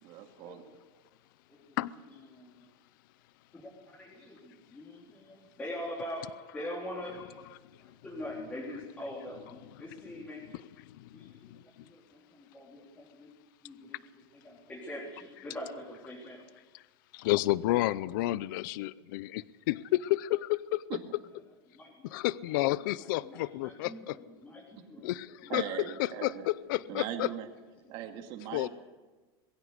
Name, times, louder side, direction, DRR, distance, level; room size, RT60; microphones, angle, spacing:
voice 1, 0.0-0.6 20.9-21.0 25.5-26.5 26.9-27.5 27.9-28.7, right 11 dB, 40° right, 5 dB, 2.3 m, -39 dB
voice 2, 2.1-2.7 3.5-10.4 11.1-13.3 13.6-14.0 14.3-16.4 21.7-22.6 22.9-25.1 25.4-25.6, left 1 dB, 10° left, -5 dB, 3.9 m, -44 dB
voice 3, 10.9-11.6 17.1-20.8 22.0-24.2 25.0-25.6 26.0-27.3 28.5-28.7, left 17 dB, 55° left, 19 dB, 0.6 m, -31 dB
21.5 x 16.0 x 8.1 m, 1.3 s
supercardioid pair, 170°, 13 cm